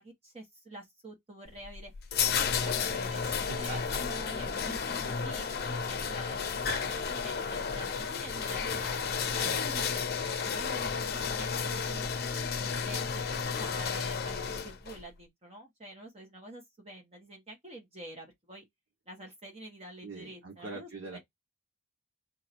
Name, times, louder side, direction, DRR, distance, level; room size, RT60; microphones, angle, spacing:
voice 1, 0.0-1.9 2.3-4.8 5.0-5.5 5.8-9.0 9.4-12.1 12.6-18.6 19.1-21.2, right 1 dB, 30° right, 1.4 m, -47 dB
sound 1, 1.4-15.0, left 6 dB, 50° left, 0.6 m, -32 dB
sound 2, 2.7-7.7, left 4 dB, 30° left, 1.0 m, -46 dB
voice 2, 3.3-4.0 9.4-9.6 20.0-21.2, right 3 dB, 70° right, 1.5 m, -43 dB
3.9 x 2.7 x 4.4 m
head